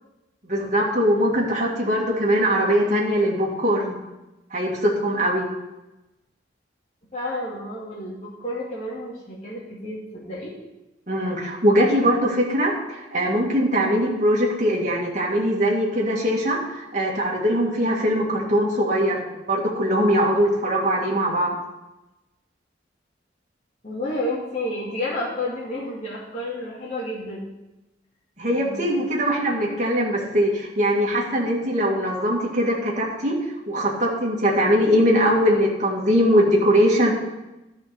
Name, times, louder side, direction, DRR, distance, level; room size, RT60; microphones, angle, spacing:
voice 1, 0.5-4.0 4.5-5.5 11.1-21.6 28.4-33.4 33.7-37.1, equal, 40° right, -4 dB, 2.0 m, -21 dB
voice 2, 7.1-10.5 23.8-27.4 28.5-28.9, left 1 dB, 35° left, -6 dB, 2.2 m, -31 dB
12.0 x 5.1 x 6.9 m, 0.99 s
head